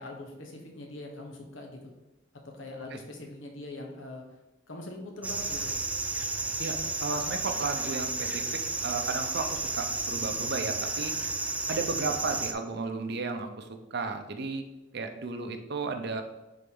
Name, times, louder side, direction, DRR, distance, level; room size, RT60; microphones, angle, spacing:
voice 1, 0.0-1.8 2.4-4.2 4.7-5.7, left 2 dB, 70° left, 2 dB, 1.2 m, -42 dB
sound 1, 5.2-12.5, right 3 dB, 5° right, 0.4 m, -32 dB
voice 2, 6.6-8.4 8.8-11.1 11.7-14.7 14.9-16.2, right 4 dB, 55° right, 6 dB, 0.7 m, -34 dB
6.9 x 4.0 x 3.8 m, 1.0 s
head